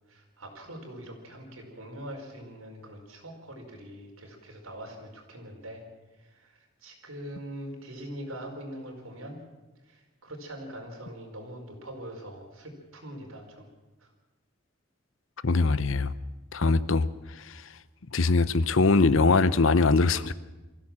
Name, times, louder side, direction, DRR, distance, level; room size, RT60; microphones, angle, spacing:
voice 1, 0.1-5.8 6.2-9.4 9.9-13.7 14.0-14.1, right 1 dB, 85° right, 4.8 m, -43 dB
voice 2, 15.4-16.1 16.5-17.1 17.4-17.6 18.1-20.3, left 3 dB, 70° left, 0.8 m, -22 dB
24.0 x 15.5 x 7.4 m
head